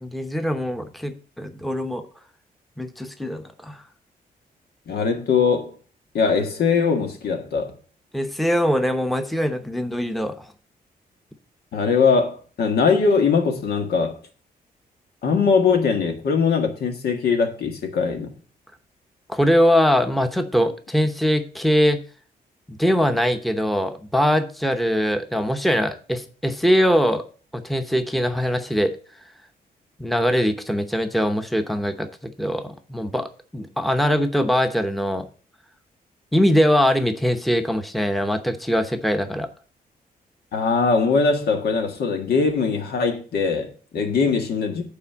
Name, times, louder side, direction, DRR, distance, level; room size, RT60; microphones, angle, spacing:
voice 1, 0.0-2.0 2.8-3.8 8.1-10.5 19.3-22.0 22.7-27.2 27.5-28.9 30.0-35.3 36.3-39.5, equal, ahead, 0.8 m, -22 dB
voice 2, 4.9-5.7 6.1-7.7 11.7-14.2 15.2-18.3 40.5-44.8, left 5 dB, 85° left, 1.7 m, -21 dB
8.6 x 4.3 x 7.2 m
wide cardioid pair, 130°, 16 cm